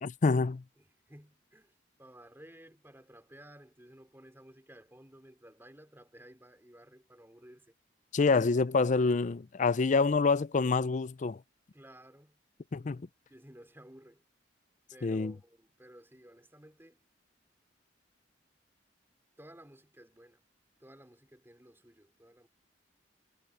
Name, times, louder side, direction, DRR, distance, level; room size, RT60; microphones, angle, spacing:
voice 1, 0.0-0.6 8.1-11.4 12.7-13.0 15.0-15.3, left 4 dB, 40° left, 0.5 m, -27 dB
voice 2, 0.8-7.8 11.7-12.4 13.3-14.2 14.9-17.0 19.4-20.4 20.8-22.5, right 1 dB, 15° right, 4.2 m, -55 dB
head